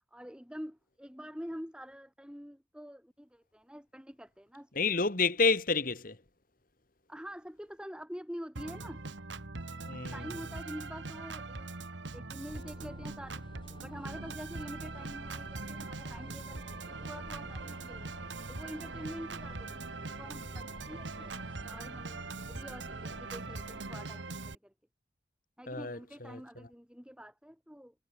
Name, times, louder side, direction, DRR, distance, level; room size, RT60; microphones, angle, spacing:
voice 1, 0.1-4.7 7.1-9.0 10.1-11.9 12.1-13.5 13.8-18.1 18.5-21.4 21.7-24.7 25.6-27.9, equal, 5° right, 3.3 m, -46 dB
voice 2, 4.7-6.2 9.8-10.3 25.7-26.7, left 4 dB, 45° left, 1.9 m, -30 dB
Organ, 8.6-24.6, right 3 dB, 80° right, 1.6 m, -42 dB
sound 1, 12.5-24.0, left 1 dB, 25° left, 6.4 m, -53 dB
head